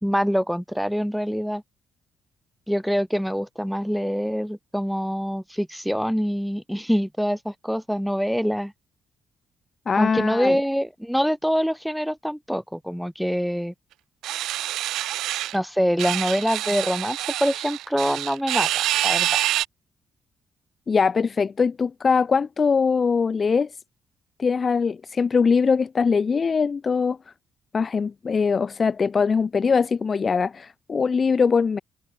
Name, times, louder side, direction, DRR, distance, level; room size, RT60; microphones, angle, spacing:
voice 1, 0.0-1.6 2.7-8.7 10.0-13.7 15.5-19.4, equal, ahead, 2.7 m, -25 dB
voice 2, 9.9-10.6 20.9-23.7 24.4-27.2 27.7-31.8, left 5 dB, 40° left, 0.7 m, -22 dB
sound 1, 14.2-15.6 16.0-19.7, right 14 dB, 85° right, 1.4 m, -26 dB
cardioid pair, 90°, 0 cm